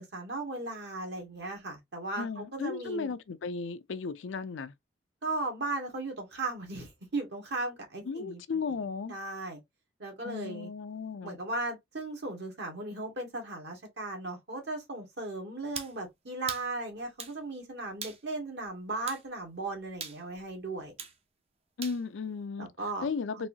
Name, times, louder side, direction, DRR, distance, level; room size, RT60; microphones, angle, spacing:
voice 1, 0.0-3.1 5.2-9.6 10.0-10.7 11.2-20.9 22.6-23.1 23.3-23.4, right 2 dB, 60° right, 1.6 m, -37 dB
voice 2, 2.2-4.7 8.1-9.2 10.2-11.4 21.8-22.7 23.0-23.5, left 4 dB, 80° left, 0.5 m, -35 dB
sound 1, 15.7-16.0 16.5-16.7 17.2-17.4 18.0-18.2 19.1-19.2 20.0-20.2 21.0-21.2 21.8-22.0, right 6 dB, 35° right, 0.6 m, -40 dB
4.1 x 2.6 x 2.7 m
head